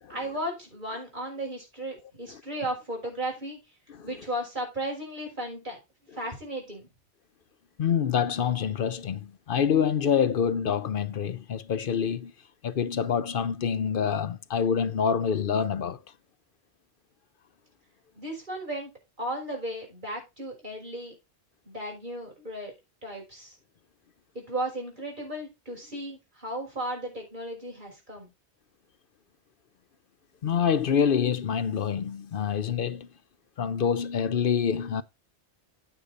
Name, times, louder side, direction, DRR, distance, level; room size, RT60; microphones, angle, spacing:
voice 1, 0.1-3.6 4.0-5.8 6.2-6.9 18.2-18.9 19.2-21.1 21.7-22.7 23.0-23.6 24.3-28.3, right 1 dB, 45° right, 5.9 m, -35 dB
voice 2, 7.8-12.3 12.6-16.0 30.4-33.1 33.6-35.0, left 7 dB, 60° left, 0.8 m, -26 dB
9.2 x 6.5 x 5.2 m
omnidirectional pair, 1.1 m